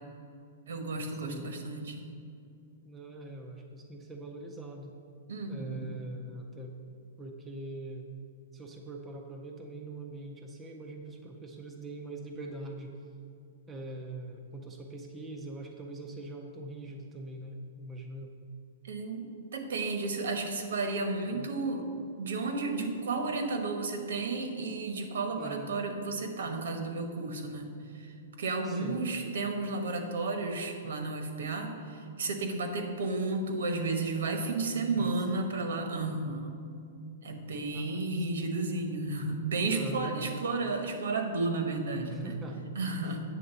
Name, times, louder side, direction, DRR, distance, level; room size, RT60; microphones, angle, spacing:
voice 1, 0.7-2.1 5.3-5.9 18.8-21.8 22.2-27.7 28.0-36.6 37.2-42.3 42.8-43.2, right 3 dB, 75° right, 5 dB, 1.1 m, -33 dB
voice 2, 2.8-5.0 5.5-6.7 7.2-8.0 8.5-12.9 13.7-18.3 21.3-21.5 25.4-25.7 28.6-29.0 34.9-35.2 37.7-38.0 39.7-40.1 42.1-42.6, right 2 dB, 10° right, 1 dB, 0.5 m, -43 dB
8.6 x 3.8 x 6.9 m, 2.5 s
hypercardioid pair, 175°, 0 cm